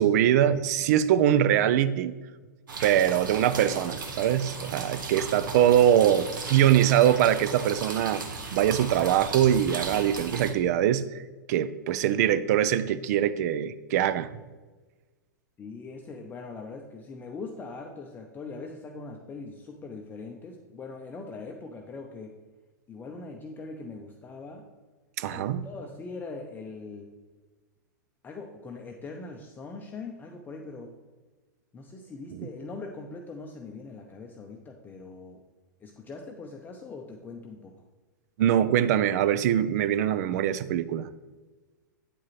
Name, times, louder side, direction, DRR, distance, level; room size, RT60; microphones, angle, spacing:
voice 1, 0.0-2.1 2.8-8.2 8.5-11.2 11.5-14.3 25.2-25.6 32.4-32.5 38.4-41.1, right 10 dB, 55° right, 15 dB, 0.4 m, -23 dB
sound 1, 2.7-10.5, right 4 dB, 80° right, 1.0 m, -37 dB
voice 2, 15.6-22.4 22.9-24.7 25.3-27.1 28.2-31.0 31.7-35.4 35.8-37.9, left 3 dB, 20° left, 2 dB, 0.6 m, -41 dB
8.6 x 4.7 x 3.1 m, 1.3 s
hypercardioid pair, 115°, 10 cm